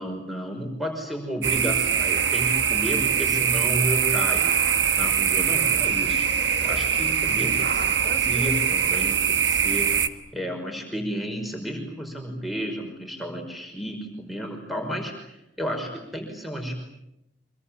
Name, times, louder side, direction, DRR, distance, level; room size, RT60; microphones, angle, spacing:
voice 1, 0.0-4.6 4.9-6.2 6.6-9.9 10.3-16.8, equal, ahead, 2 dB, 5.5 m, -32 dB
Village Night Crickets, 1.4-10.1, right 7 dB, 75° right, 1.5 m, -23 dB
26.0 x 23.5 x 8.8 m, 0.85 s
head